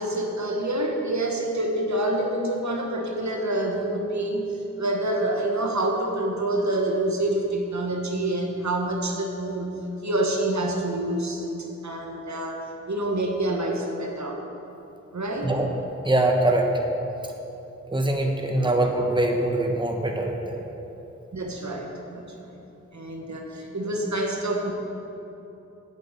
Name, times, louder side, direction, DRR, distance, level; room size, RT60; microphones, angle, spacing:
voice 1, 0.0-4.5 4.8-11.5 11.8-14.4 15.1-15.5 18.6-18.7 21.3-24.7, right 1 dB, 70° right, 1 dB, 1.4 m, -27 dB
voice 2, 16.0-16.7 17.9-20.6, right 1 dB, 15° right, 2 dB, 1.3 m, -23 dB
8.9 x 7.3 x 8.6 m, 3.0 s
cardioid pair, 50°, 29 cm